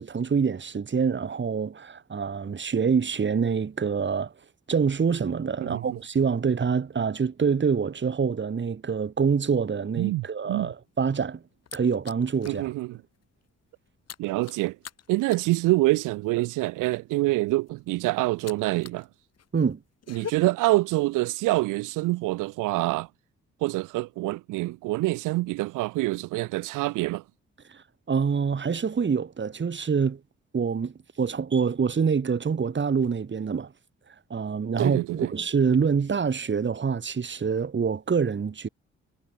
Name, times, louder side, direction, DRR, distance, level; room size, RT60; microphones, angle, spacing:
voice 1, 0.0-4.3 4.7-11.4 11.7-12.6 19.5-19.8 27.7-30.2 30.5-33.7 34.3-38.7, right 6 dB, 35° right, 2.3 m, -26 dB
voice 2, 10.0-10.7 12.5-13.0 14.2-14.8 15.1-19.1 20.1-23.1 23.6-27.2 34.8-35.3, right 20 dB, 65° right, 2.0 m, -26 dB
sound 1, 10.9-12.7 13.0-13.2 13.5-19.1 19.3-20.3, left 8 dB, 50° left, 5.7 m, -44 dB
figure-of-eight pair, 40°, 33 cm